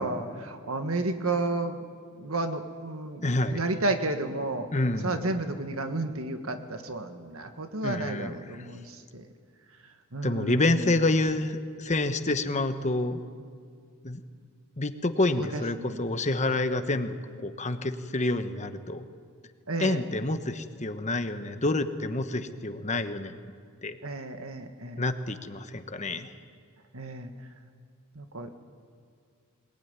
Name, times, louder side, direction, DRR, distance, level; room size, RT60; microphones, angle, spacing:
voice 1, 0.0-1.8 2.2-3.2 3.5-4.7 5.0-9.2 10.1-10.9 15.4-16.0 19.7-20.0 24.0-25.0 26.9-27.3 28.2-28.5, right 2 dB, 70° right, 7 dB, 1.8 m, -32 dB
voice 2, 3.2-3.6 4.7-5.3 7.8-8.8 10.2-13.2 14.0-14.2 14.8-19.0 19.8-23.4 23.8-24.0 25.0-26.3, left 2 dB, 35° left, 9 dB, 1.1 m, -28 dB
22.5 x 20.5 x 9.7 m, 2.1 s
head